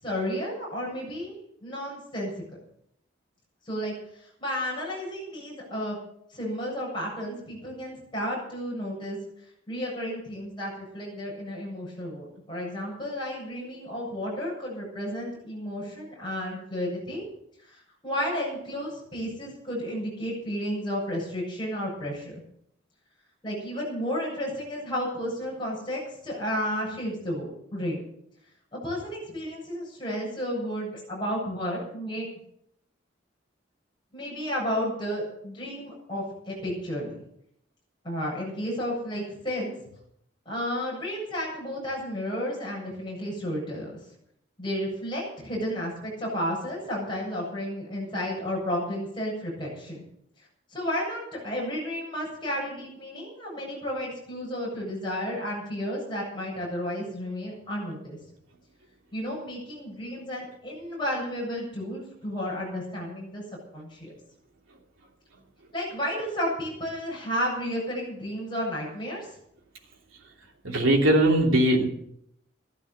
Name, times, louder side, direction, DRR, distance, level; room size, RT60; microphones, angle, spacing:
voice 1, 0.0-1.3 1.6-2.3 3.6-6.0 6.3-9.2 9.7-17.2 17.6-22.4 23.4-28.0 28.7-32.3 34.1-37.1 38.0-39.7 40.4-44.0 44.6-50.0 50.7-58.2 59.1-63.4 63.7-64.1 65.7-69.3, equal, 25° left, -4 dB, 7.8 m, -32 dB
voice 2, 70.6-71.9, right 1 dB, 85° right, 0 dB, 3.0 m, -20 dB
14.5 x 12.5 x 6.7 m, 0.73 s
head